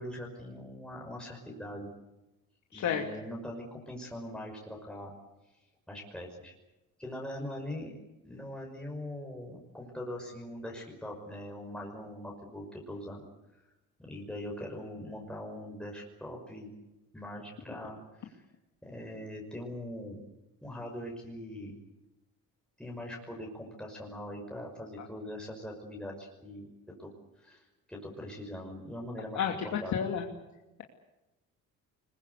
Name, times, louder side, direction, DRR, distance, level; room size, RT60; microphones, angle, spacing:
voice 1, 0.0-1.9 2.7-5.1 5.9-6.5 7.0-7.9 8.2-13.2 14.0-16.7 17.1-18.4 18.8-20.2 20.6-21.8 22.8-26.7 27.0-29.5 29.8-29.9, left 1 dB, 5° left, -1 dB, 5.7 m, -42 dB
voice 2, 2.7-3.0 29.3-30.3, left 8 dB, 60° left, 2 dB, 2.7 m, -31 dB
23.5 x 21.5 x 8.3 m, 0.99 s
cardioid pair, 95°, 32 cm